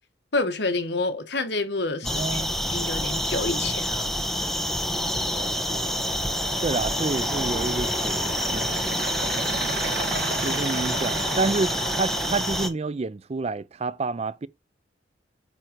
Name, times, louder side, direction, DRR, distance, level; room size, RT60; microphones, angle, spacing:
voice 1, 0.3-2.4 2.7-4.1, left 2 dB, 65° left, 1.4 m, -28 dB
sound 1, 2.0-12.7, equal, ahead, 0.9 m, -27 dB
voice 2, 2.0-2.6 5.3-6.0 6.6-8.8 10.4-11.7 12.0-14.5, right 3 dB, 35° right, 0.4 m, -29 dB
sound 2, 3.9-12.7, right 3 dB, 60° right, 1.6 m, -35 dB
8.9 x 3.8 x 4.6 m
head